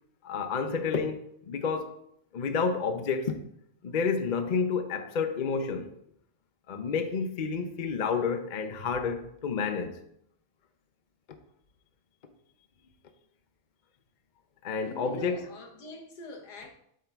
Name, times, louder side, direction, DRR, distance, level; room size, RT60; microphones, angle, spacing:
voice 1, 0.2-2.0 2.3-3.4 3.8-5.9 6.7-10.0 14.6-15.4, left 5 dB, 50° left, 0.5 m, -30 dB
voice 2, 14.8-16.7, left 2 dB, 80° left, 1.7 m, -44 dB
8.5 x 3.8 x 4.5 m
omnidirectional pair, 1.7 m